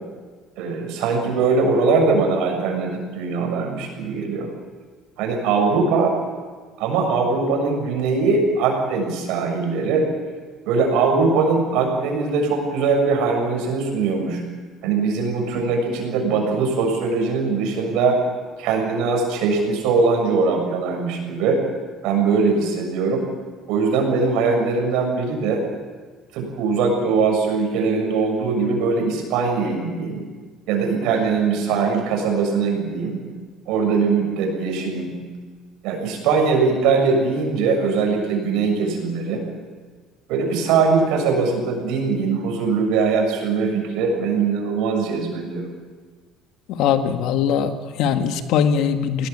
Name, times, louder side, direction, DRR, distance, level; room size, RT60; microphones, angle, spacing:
voice 1, 0.6-4.5 5.2-6.1 6.8-10.1 10.7-14.4 14.8-18.2 18.6-21.6 22.0-23.2 23.7-25.6 26.3-30.3 30.7-33.2 33.7-35.1 35.8-39.4 40.3-45.6, right 4 dB, 80° right, 2 dB, 7.0 m, -21 dB
voice 2, 46.7-49.3, left 7 dB, 75° left, 7 dB, 1.8 m, -21 dB
21.0 x 18.0 x 8.9 m, 1.5 s
cardioid pair, 130°, 0 cm